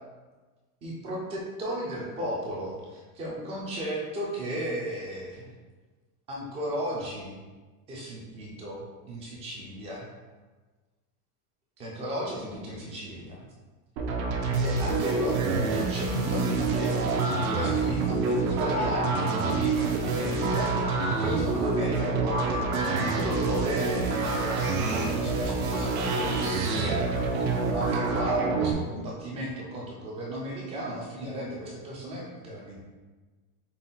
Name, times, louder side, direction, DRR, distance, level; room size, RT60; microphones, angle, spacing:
voice 1, 0.8-5.5 6.3-7.3 7.9-10.1 11.8-13.5 14.6-17.0 17.3-20.7 21.2-27.4 27.7-32.9, right 1 dB, 15° right, -3 dB, 0.3 m, -35 dB
sound 1, 14.0-28.7, right 3 dB, 60° right, 0.8 m, -27 dB
5.5 x 2.2 x 3.9 m, 1.3 s
supercardioid pair, 160°, 46 cm